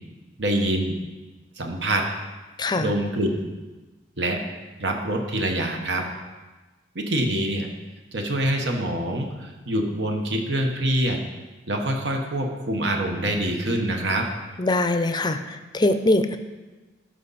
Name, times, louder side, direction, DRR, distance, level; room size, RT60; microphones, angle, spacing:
voice 1, 0.4-1.0 1.6-2.1 2.8-3.5 4.2-4.4 4.8-6.1 6.9-7.7 8.1-11.2 11.7-14.3, right 1 dB, 70° right, 3 dB, 1.2 m, -25 dB
voice 2, 2.6-2.9 14.6-16.4, left 2 dB, 25° left, 8 dB, 0.5 m, -22 dB
13.0 x 5.1 x 4.2 m, 1.2 s
head